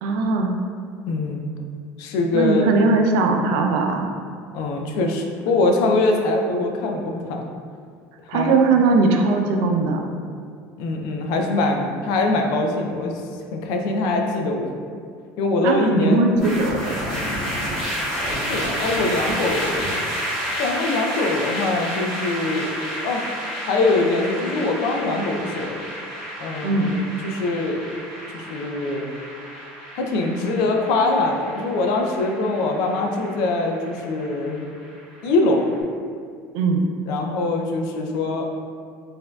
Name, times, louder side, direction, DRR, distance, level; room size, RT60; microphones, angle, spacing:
voice 1, 0.0-0.5 2.3-4.1 8.3-10.0 15.6-16.9 26.6-26.9 36.5-36.8, right 3 dB, 75° right, 2 dB, 0.4 m, -19 dB
voice 2, 1.1-1.5 2.0-2.7 4.5-7.4 8.3-8.6 10.8-13.1 13.5-14.7 15.4-16.3 17.1-17.8 18.5-19.9 20.6-22.7 23.0-23.2 23.7-25.8 26.4-27.8 28.3-29.1 30.0-34.7 35.2-35.7 37.1-38.4, left 2 dB, 70° left, 2 dB, 0.4 m, -23 dB
sound 1, 16.4-35.6, equal, 5° left, 1.3 m, -30 dB
4.1 x 2.6 x 2.3 m, 2.2 s
cardioid pair, 125°, 7 cm